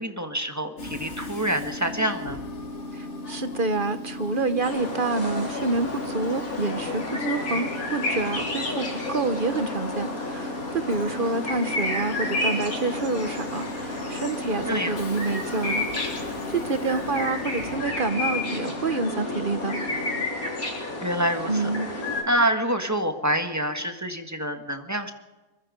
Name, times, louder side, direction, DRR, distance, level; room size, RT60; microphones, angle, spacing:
voice 1, 0.0-2.4 7.4-7.6 14.7-15.0 21.0-25.1, right 1 dB, 10° right, 6 dB, 1.6 m, -27 dB
Train / Subway metro underground, 0.8-20.3, left 2 dB, 50° left, 1.8 m, -36 dB
voice 2, 2.9-19.9 21.5-21.9, right 3 dB, 40° right, 11 dB, 1.0 m, -28 dB
sound 1, 4.6-22.2, left 2 dB, 65° left, 4.7 m, -31 dB
23.5 x 22.0 x 5.2 m, 1.1 s
omnidirectional pair, 1.6 m